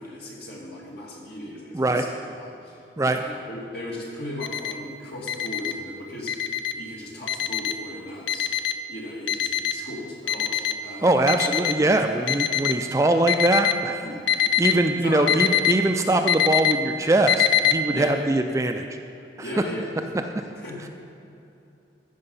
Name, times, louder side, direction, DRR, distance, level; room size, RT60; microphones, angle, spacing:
voice 1, 0.0-2.1 2.3-2.8 3.1-6.4 6.8-8.5 8.9-11.3 14.0-14.3 14.9-15.5 17.9-18.1 19.4-20.2 20.6-20.9, left 1 dB, 65° left, -4 dB, 2.4 m, -37 dB
voice 2, 1.7-2.1 3.0-3.2 11.0-14.0 14.6-18.9, right 2 dB, 15° right, 6 dB, 0.4 m, -22 dB
Alarm, 4.4-4.7 5.3-5.7 6.3-6.7 7.3-7.7 8.3-8.7 9.3-9.7 10.3-10.7 11.3-11.7 12.3-12.7 13.3-13.7 14.3-14.7 15.3-15.7 16.3-16.7 17.3-17.7, left 11 dB, 85° left, 0.5 m, -22 dB
14.0 x 5.9 x 5.5 m, 2.7 s
head